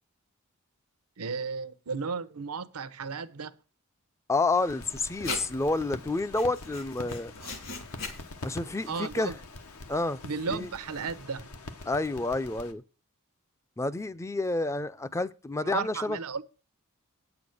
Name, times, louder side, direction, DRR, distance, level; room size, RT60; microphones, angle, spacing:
voice 1, 1.2-3.5 7.4-7.5 8.9-9.3 10.2-11.5 15.6-16.4, right 5 dB, 85° right, 0.8 m, -34 dB
voice 2, 4.3-7.3 8.4-9.3 9.9-10.2 10.5-10.7 11.9-12.8 13.8-16.2, left 2 dB, 15° left, 0.4 m, -29 dB
sound 1, 4.5-12.7, left 2 dB, 80° left, 1.1 m, -45 dB
Writing, 4.9-11.2, left 3 dB, 65° left, 3.1 m, -43 dB
9.1 x 7.0 x 6.4 m
head